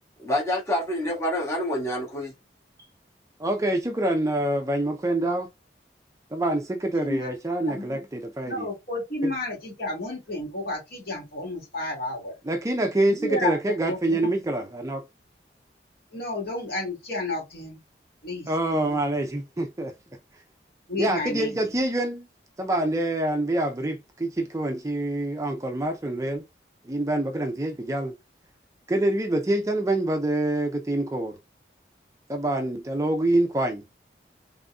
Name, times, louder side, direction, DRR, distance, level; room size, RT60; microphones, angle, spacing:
voice 1, 0.2-2.3, left 1 dB, 15° left, 1.4 m, -27 dB
voice 2, 3.4-5.5 6.3-8.7 9.2-9.3 12.4-15.0 18.5-19.9 21.0-22.3 22.6-26.4 26.8-28.1 28.9-31.4 32.3-33.8, right 1 dB, 20° right, 0.4 m, -26 dB
voice 3, 7.7-8.0 8.5-12.3 13.0-13.6 13.9-14.2 16.1-17.8 18.2-19.0 20.9-21.5, left 2 dB, 60° left, 2.1 m, -31 dB
3.8 x 3.5 x 2.3 m
head